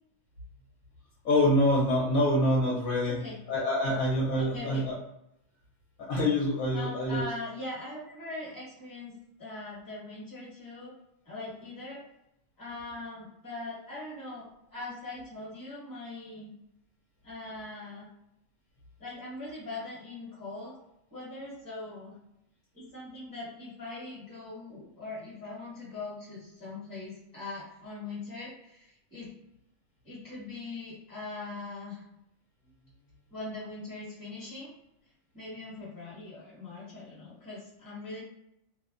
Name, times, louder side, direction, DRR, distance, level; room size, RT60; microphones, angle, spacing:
voice 1, 1.2-3.2 3.5-5.0 6.0-7.3, left 1 dB, 70° left, -4 dB, 1.0 m, -26 dB
voice 2, 3.0-3.3 3.9-4.0 4.4-4.9 6.7-9.1 9.4-10.9 11.2-12.0 12.6-16.5 17.2-18.1 19.0-20.8 21.1-22.1 22.7-29.3 30.0-32.0 33.3-34.7 35.3-38.2, left 2 dB, 15° left, -7 dB, 1.0 m, -41 dB
2.6 x 2.1 x 2.4 m, 0.82 s
omnidirectional pair, 1.6 m